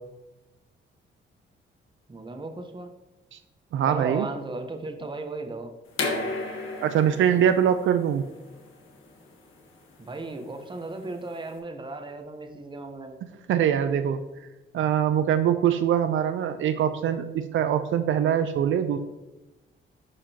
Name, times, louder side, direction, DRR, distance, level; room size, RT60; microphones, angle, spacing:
voice 1, 2.1-2.9 3.9-5.7 10.0-13.2, right 3 dB, 25° right, 5 dB, 0.9 m, -36 dB
voice 2, 3.7-4.3 6.8-8.2 13.5-14.2 14.7-19.0, right 9 dB, 70° right, 9 dB, 0.5 m, -23 dB
sound 1, 5.9-11.5, left 3 dB, 75° left, 1.5 m, -35 dB
11.0 x 5.0 x 2.9 m, 1.0 s
cardioid pair, 95°, 21 cm